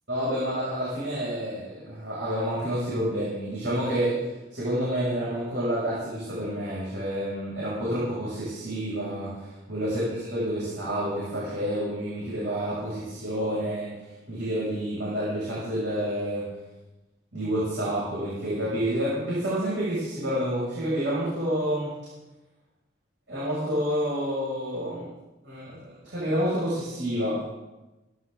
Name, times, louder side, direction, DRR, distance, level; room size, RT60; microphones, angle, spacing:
voice 1, 0.1-4.2 4.5-16.4 17.3-21.9 23.3-25.1 25.4-27.4, equal, 70° right, -8 dB, 7.5 m, -29 dB
26.5 x 12.5 x 4.1 m, 1.1 s
head